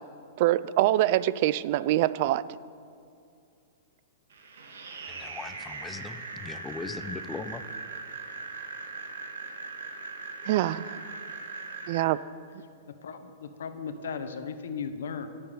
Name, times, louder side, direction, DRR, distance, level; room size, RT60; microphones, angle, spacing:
voice 1, 0.4-2.4 10.4-11.0 11.9-12.2, right 14 dB, 50° right, 18 dB, 0.3 m, -24 dB
sound 1, 4.3-12.0, right 4 dB, 85° right, 1.8 m, -40 dB
voice 2, 5.1-7.6, left 4 dB, 10° left, 11 dB, 0.5 m, -39 dB
voice 3, 13.0-15.3, left 6 dB, 85° left, 9 dB, 0.9 m, -36 dB
17.0 x 7.0 x 5.1 m, 2.3 s
hypercardioid pair, 145°, 0 cm